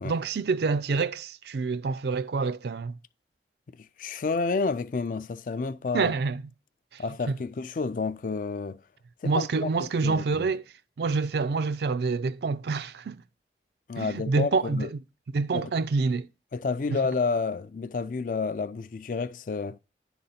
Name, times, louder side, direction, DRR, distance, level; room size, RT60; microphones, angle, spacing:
voice 1, 0.0-3.0 5.9-6.4 6.9-7.0 9.2-10.6 11.0-13.2 14.0-15.0 15.3-16.3 16.9-17.0, right 4 dB, 65° right, 0.4 m, -27 dB
voice 2, 4.0-6.1 7.0-8.8 9.2-9.7 10.0-10.5 13.9-14.9 15.5-15.7 16.5-19.8, left 4 dB, 50° left, 0.4 m, -30 dB
10.0 x 3.9 x 5.7 m
head